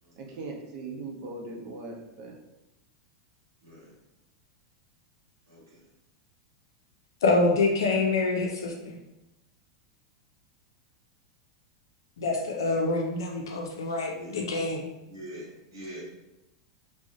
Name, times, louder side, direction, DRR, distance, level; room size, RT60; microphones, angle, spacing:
voice 1, 0.2-2.3, right 3 dB, 55° right, 0 dB, 0.6 m, -39 dB
voice 2, 3.6-3.9 5.5-5.8 14.1-14.5 15.0-16.0, right 1 dB, 85° right, -7 dB, 1.0 m, -44 dB
voice 3, 7.2-9.0 12.2-14.8, left 3 dB, 85° left, 1 dB, 0.4 m, -26 dB
2.4 x 2.1 x 3.7 m, 0.93 s
hypercardioid pair, 105°, 2 cm